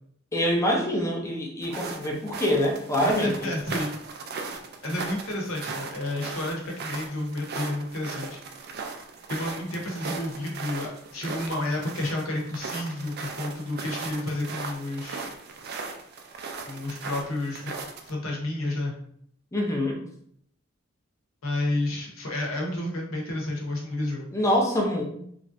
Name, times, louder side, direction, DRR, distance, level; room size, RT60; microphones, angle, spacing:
voice 1, 0.3-3.5 19.5-20.0 24.3-25.0, equal, 15° left, -1 dB, 0.5 m, -25 dB
sound 1, 1.6-18.1, right 4 dB, 50° right, 0.4 m, -38 dB
voice 2, 3.0-3.9 4.8-8.4 9.3-15.3 16.7-17.7 18.1-19.0 21.4-24.3, left 1 dB, 85° left, -1 dB, 0.8 m, -31 dB
3.2 x 2.5 x 2.5 m, 0.68 s
head